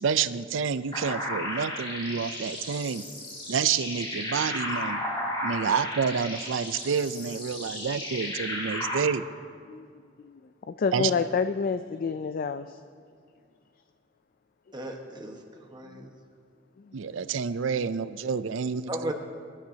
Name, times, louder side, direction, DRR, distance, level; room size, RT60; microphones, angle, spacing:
voice 1, 0.0-3.0 3.5-5.0 5.4-9.2 10.9-11.1 16.9-19.1, right 6 dB, 85° right, 14 dB, 0.5 m, -28 dB
sound 1, 0.9-9.0, left 1 dB, 25° left, 2.4 m, -34 dB
voice 2, 10.7-12.8, left 5 dB, 50° left, 10 dB, 0.3 m, -28 dB
voice 3, 14.7-16.1 18.9-19.1, right 1 dB, 25° right, 2 dB, 1.3 m, -36 dB
22.0 x 11.5 x 2.8 m, 2.2 s
head